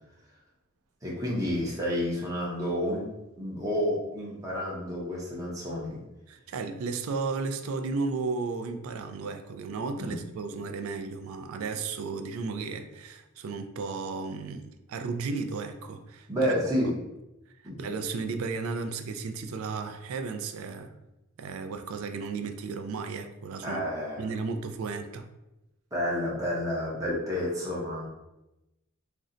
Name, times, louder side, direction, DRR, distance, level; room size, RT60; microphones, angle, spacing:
voice 1, 1.0-3.1 3.4-6.0 10.0-10.2 16.3-16.9 17.6-17.8 23.6-24.3 25.9-28.1, equal, 15° right, 0.6 m, -30 dB
voice 2, 6.3-16.5 17.8-20.9 21.4-23.8 24.2-25.3, right 4 dB, 70° right, 0.3 m, -34 dB
2.5 x 2.1 x 3.7 m
head